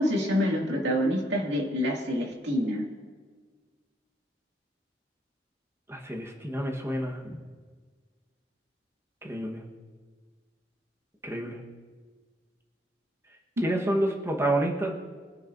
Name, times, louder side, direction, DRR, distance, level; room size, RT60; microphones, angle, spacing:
voice 1, 0.0-2.9 13.6-13.7, equal, 80° right, -1 dB, 2.3 m, -27 dB
voice 2, 5.9-7.4 9.2-9.6 11.2-11.6 13.6-14.9, right 1 dB, 15° right, 0 dB, 1.2 m, -29 dB
23.5 x 9.7 x 2.6 m, 1.5 s
head